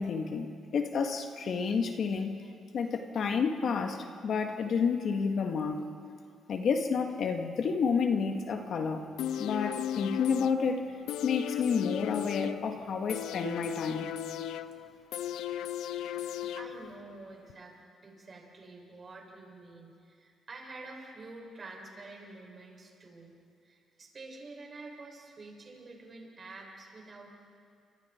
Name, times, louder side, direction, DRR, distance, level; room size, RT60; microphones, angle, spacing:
voice 1, 0.0-2.4 2.7-5.9 6.5-9.1 9.4-10.8 11.2-14.1, left 5 dB, 60° left, 4 dB, 2.0 m, -30 dB
sound 1, 9.2-17.2 17.5-17.6, left 11 dB, 85° left, 0.5 m, -36 dB
voice 2, 16.2-17.7 18.0-23.4 23.6-27.3, right 3 dB, 40° right, -1 dB, 6.9 m, -48 dB
29.5 x 27.0 x 4.7 m, 2.3 s
cardioid pair, 90°, 0 cm